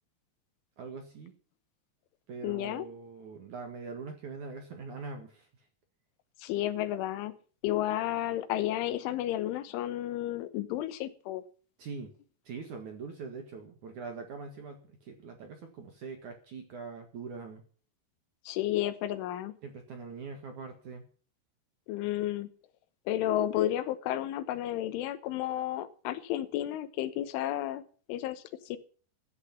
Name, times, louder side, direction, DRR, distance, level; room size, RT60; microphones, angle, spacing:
voice 1, 0.8-1.3 2.3-5.5 11.8-12.1 12.4-17.6 19.6-21.1, right 4 dB, 55° right, 5 dB, 2.4 m, -42 dB
voice 2, 2.4-2.9 6.4-7.3 7.6-11.4 18.5-19.5 21.9-22.5 23.1-27.8 28.1-28.8, left 13 dB, 80° left, 12 dB, 3.5 m, -32 dB
14.5 x 9.9 x 5.8 m, 0.41 s
omnidirectional pair, 5.5 m